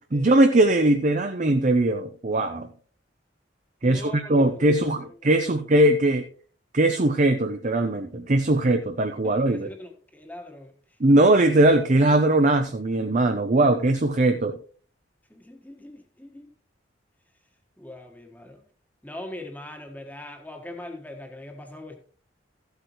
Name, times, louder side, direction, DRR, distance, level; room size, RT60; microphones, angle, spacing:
voice 1, 0.1-2.7 3.8-6.2 6.7-9.7 11.0-14.6, right 1 dB, 45° right, 0.7 m, -20 dB
voice 2, 3.8-4.9 5.4-5.6 9.2-10.8 15.3-16.5 17.8-18.6 19.0-22.0, left 1 dB, 10° left, 1.4 m, -41 dB
14.5 x 8.2 x 3.1 m
head